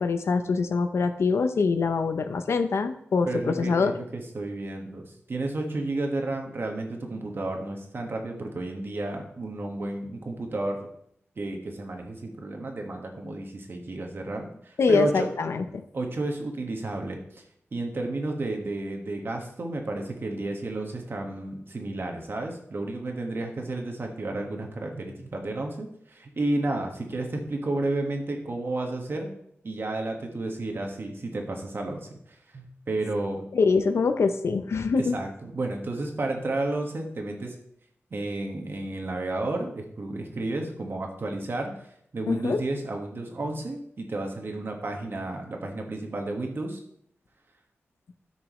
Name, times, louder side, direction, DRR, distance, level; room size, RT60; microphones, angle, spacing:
voice 1, 0.0-4.0 14.8-15.8 33.5-35.2 42.3-42.6, left 4 dB, 75° left, 9 dB, 0.7 m, -24 dB
voice 2, 3.2-10.8 11.4-15.3 15.9-17.4 17.7-29.3 29.6-32.1 32.5-33.5 35.0-37.6 38.1-41.7 42.1-46.8, right 2 dB, 55° right, 2 dB, 1.6 m, -32 dB
13.0 x 6.2 x 3.2 m, 0.70 s
wide cardioid pair, 105°, 5 cm